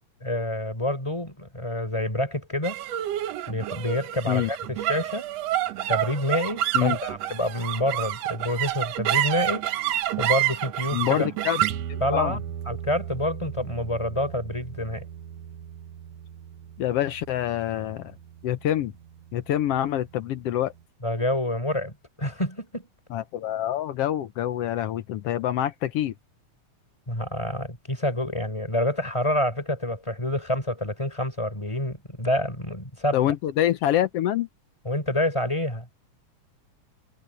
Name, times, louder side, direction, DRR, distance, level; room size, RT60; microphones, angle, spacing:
voice 1, 0.2-2.8 3.5-5.2 5.9-9.7 10.2-11.3 12.0-12.4 12.7-15.0 21.0-21.9 22.2-22.9 27.1-33.2 34.8-35.9, left 1 dB, 10° left, 4.9 m, -27 dB
sound 1, 2.6-19.2, right 12 dB, 70° right, 1.9 m, -30 dB
voice 2, 10.9-11.6 11.9-12.4 16.8-18.1 18.4-18.9 19.3-20.7 23.1-26.1 33.1-34.5, left 12 dB, 70° left, 1.5 m, -26 dB
omnidirectional pair, 3.4 m